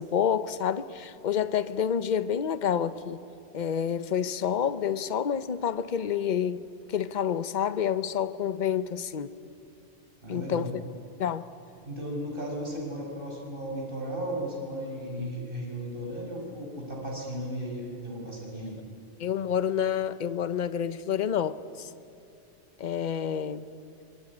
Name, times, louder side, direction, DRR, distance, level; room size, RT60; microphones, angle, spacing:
voice 1, 0.0-3.2 3.5-6.6 6.9-9.3 10.3-10.8 11.2-11.5 15.2-15.3 19.2-21.9 22.8-23.7, left 8 dB, 45° left, 14 dB, 0.8 m, -28 dB
voice 2, 10.2-10.7 11.9-18.8, equal, 45° right, -2 dB, 5.9 m, -35 dB
25.5 x 22.5 x 9.6 m, 2.6 s
omnidirectional pair, 1.3 m